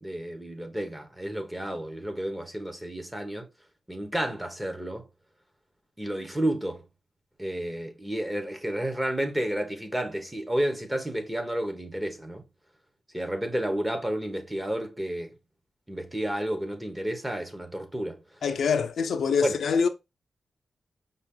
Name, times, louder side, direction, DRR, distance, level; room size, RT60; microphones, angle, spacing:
voice 1, 0.0-3.5 3.9-5.1 6.0-6.8 7.4-12.4 13.1-15.4 15.9-18.2 19.4-19.6, right 1 dB, 10° right, 1.0 m, -31 dB
voice 2, 18.4-19.9, left 6 dB, 85° left, 0.5 m, -25 dB
5.3 x 2.4 x 3.7 m
wide cardioid pair, 100°, 0 cm